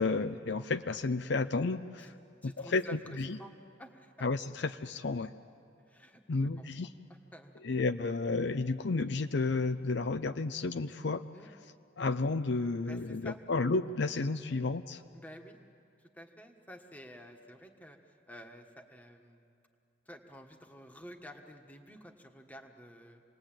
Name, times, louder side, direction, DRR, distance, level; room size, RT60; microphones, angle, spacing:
voice 1, 0.0-2.1 2.4-3.4 4.2-5.3 6.3-6.9 7.5-15.0, left 3 dB, 60° left, 10 dB, 0.5 m, -32 dB
voice 2, 2.4-3.5 3.8-4.1 5.9-6.7 7.3-7.6 11.3-11.5 12.9-13.4 15.1-15.6 16.0-19.5 20.0-23.2, equal, 10° left, 4 dB, 1.5 m, -51 dB
28.0 x 20.0 x 8.9 m, 2.5 s
head